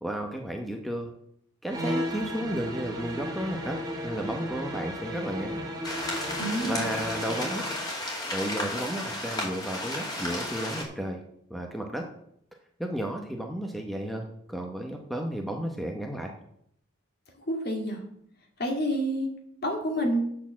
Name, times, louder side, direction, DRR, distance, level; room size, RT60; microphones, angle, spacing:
voice 1, 0.0-1.1 1.6-3.8 4.0-5.6 6.6-7.6 8.3-11.2 11.5-12.1 12.8-16.3, equal, ahead, 2 dB, 0.9 m, -33 dB
sound 1, 1.7-7.8, equal, 15° right, 2.0 m, -34 dB
sound 2, 5.8-10.8, left 1 dB, 20° left, 2.4 m, -33 dB
voice 2, 6.4-6.9 17.5-18.0 18.6-19.3 19.6-20.3, equal, 45° left, 2 dB, 2.1 m, -28 dB
8.3 x 6.7 x 7.4 m, 0.71 s
head